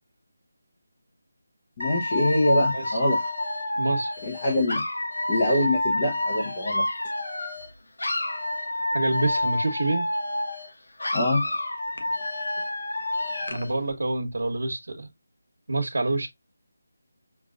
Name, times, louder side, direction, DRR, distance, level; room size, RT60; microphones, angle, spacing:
Dog / Alarm, 1.8-7.7 8.0-10.7 11.0-13.7, left 1 dB, 85° left, 1.2 m, -29 dB
voice 1, 1.8-3.2 4.3-4.8 5.3-6.9 11.1-11.5, left 1 dB, 20° left, 0.7 m, -24 dB
voice 2, 3.8-4.1 8.9-10.1 13.5-15.1 15.7-16.3, right 2 dB, 85° right, 1.2 m, -27 dB
6.6 x 2.4 x 2.4 m
figure-of-eight pair, 180°, 0 cm